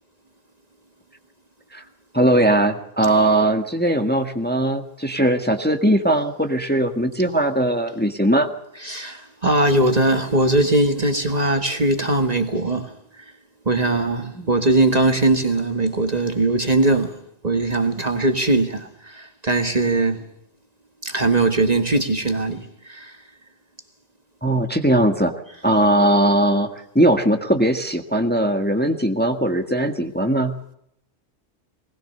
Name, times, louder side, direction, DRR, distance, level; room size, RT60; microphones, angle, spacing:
voice 1, 2.1-8.5 14.4-14.5 24.4-25.3 25.6-30.6, right 1 dB, 10° left, 1.5 m, -19 dB
voice 2, 8.8-12.9 13.7-17.2 17.4-20.2 21.0-23.2, right 2 dB, 35° right, 1.8 m, -20 dB
20.5 x 20.0 x 6.8 m
omnidirectional pair, 1.3 m